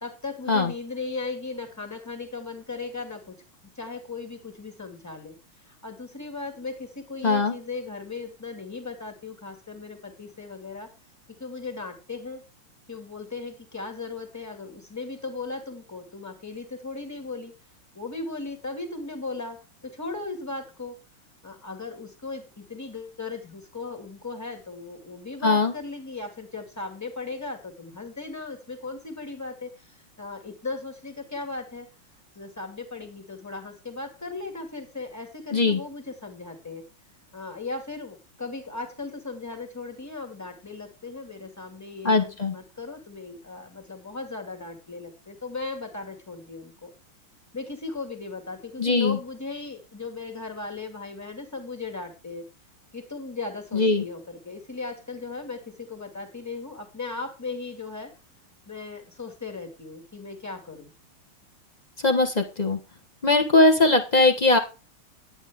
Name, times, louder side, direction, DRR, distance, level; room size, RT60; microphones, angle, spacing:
voice 1, 0.0-3.4 3.8-5.4 5.6-10.9 11.4-12.4 12.9-17.5 17.9-21.0 21.4-31.9 32.4-36.8 37.3-46.9 47.5-52.4 52.9-58.1 58.7-60.9, left 3 dB, 10° left, 4 dB, 2.0 m, -37 dB
voice 2, 7.2-7.5 25.4-25.7 35.5-35.8 42.0-42.5 48.8-49.2 53.7-54.0 62.0-62.8 63.2-64.6, left 3 dB, 25° left, 3 dB, 1.1 m, -20 dB
11.0 x 9.1 x 3.6 m, 0.29 s
omnidirectional pair, 2.4 m